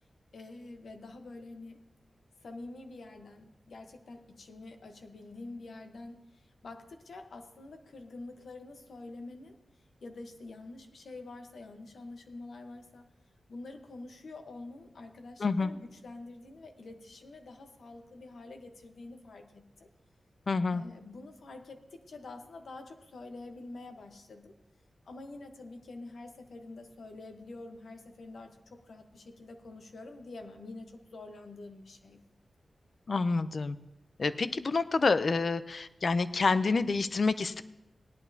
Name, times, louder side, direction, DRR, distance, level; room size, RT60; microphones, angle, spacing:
voice 1, 0.3-1.8 2.4-6.2 6.6-9.6 10.0-13.1 13.5-19.9 20.7-24.5 25.0-32.2, left 2 dB, 75° left, 6 dB, 1.1 m, -47 dB
voice 2, 15.4-15.7 20.5-20.8 33.1-33.8 34.2-37.6, left 4 dB, 50° left, 13 dB, 0.5 m, -28 dB
18.0 x 11.0 x 2.8 m, 0.92 s
wide cardioid pair, 120°, 0 cm